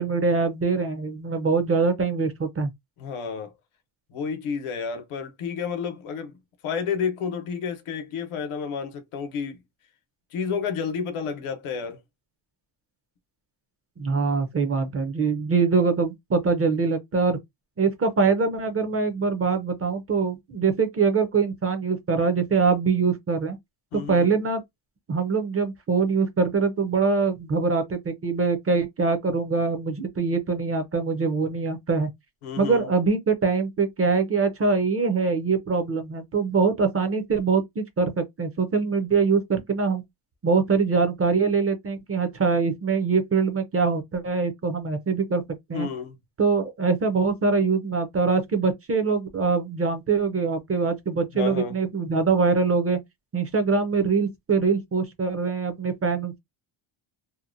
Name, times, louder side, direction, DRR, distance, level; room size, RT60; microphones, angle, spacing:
voice 1, 0.0-2.7 14.0-17.4 17.8-23.6 23.9-24.6 25.1-32.1 32.6-40.0 40.4-45.4 45.7-45.9 46.4-53.0 53.3-56.4, right 4 dB, 30° right, 0.5 m, -23 dB
voice 2, 3.0-3.5 4.1-6.4 6.6-9.6 10.3-12.0 23.9-24.3 32.4-32.9 45.7-46.2 51.3-51.8, left 6 dB, 80° left, 0.9 m, -30 dB
2.8 x 2.1 x 2.5 m
cardioid pair, 135°, 49 cm